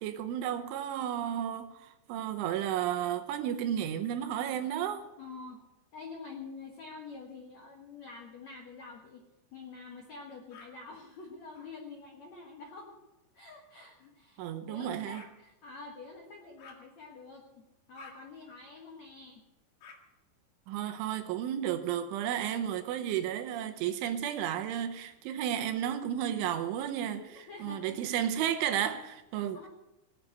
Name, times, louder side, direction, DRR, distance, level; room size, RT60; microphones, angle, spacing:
voice 1, 0.0-5.1 14.4-15.2 20.7-29.7, right 10 dB, 80° right, 3.2 m, -33 dB
voice 2, 5.2-5.7 5.9-9.2 9.5-13.0 13.3-19.4 27.2-28.2 29.4-29.7, left 4 dB, 85° left, 1.5 m, -47 dB
sound 1, 10.5-10.7 11.5-11.7 13.8-13.9 15.1-15.3 16.6-16.8 17.9-18.2 19.8-20.0 21.5-22.3 23.3-24.2 25.1-25.9, left 5 dB, 55° left, 3.3 m, -55 dB
19.0 x 8.4 x 8.0 m
omnidirectional pair, 5.9 m